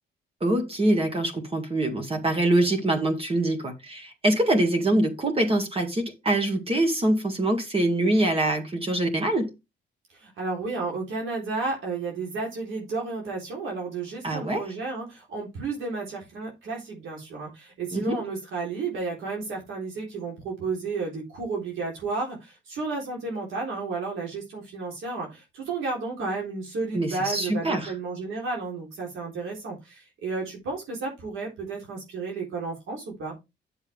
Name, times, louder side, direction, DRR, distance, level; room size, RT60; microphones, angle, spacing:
voice 1, 0.4-9.5 14.2-14.7 17.9-18.2 26.9-27.9, right 1 dB, 30° right, 2.0 m, -24 dB
voice 2, 10.1-33.3, right 3 dB, 80° right, 3.7 m, -32 dB
8.6 x 7.2 x 3.5 m
cardioid pair, 90°, 20 cm